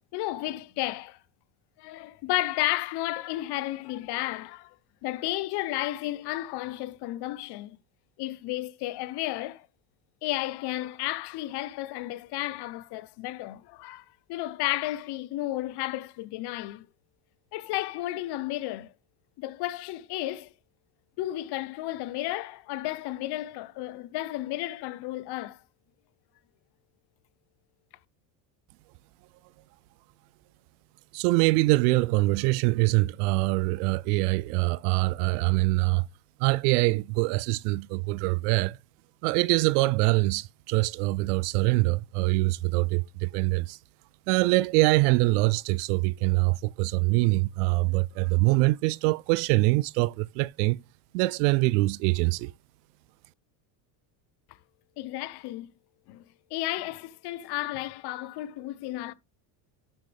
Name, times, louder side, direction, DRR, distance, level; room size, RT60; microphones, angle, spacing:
voice 1, 0.1-1.2 1.8-4.7 5.0-7.8 8.2-9.7 10.2-16.9 17.5-18.9 19.4-20.5 21.2-25.6 55.0-55.7 56.1-56.2 56.5-59.1, left 16 dB, 55° left, 1.0 m, -33 dB
voice 2, 31.1-36.0 36.4-38.8 39.2-43.8 44.3-50.8 51.1-52.5, right 22 dB, 80° right, 0.5 m, -24 dB
12.0 x 6.0 x 3.5 m
supercardioid pair, 120°, 46 cm